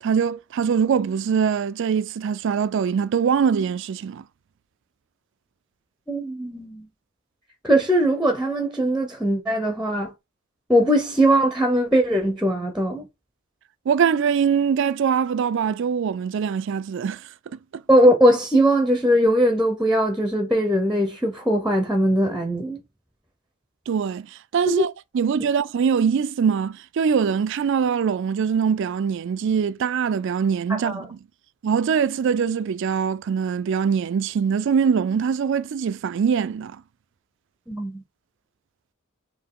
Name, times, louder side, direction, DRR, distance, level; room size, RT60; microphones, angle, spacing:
voice 1, 0.0-4.2 13.9-17.8 23.9-31.2 31.6-36.8, right 6 dB, 65° right, 0.3 m, -23 dB
voice 2, 6.1-6.9 7.6-10.1 10.7-13.1 17.9-22.8 24.7-24.8 30.7-31.0 37.7-38.0, equal, 5° right, 0.6 m, -20 dB
4.4 x 2.8 x 3.6 m
head